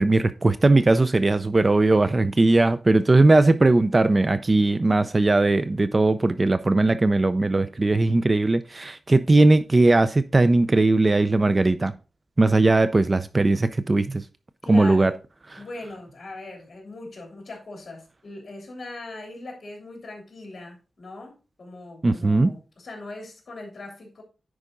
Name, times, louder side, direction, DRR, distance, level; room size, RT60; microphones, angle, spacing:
voice 1, 0.0-11.9 12.4-14.2 14.7-15.1 22.0-22.5, right 2 dB, 25° right, 0.4 m, -19 dB
voice 2, 14.6-15.2 15.6-24.2, left 2 dB, 50° left, 3.2 m, -40 dB
9.8 x 4.8 x 3.8 m
wide cardioid pair, 155°, 0 cm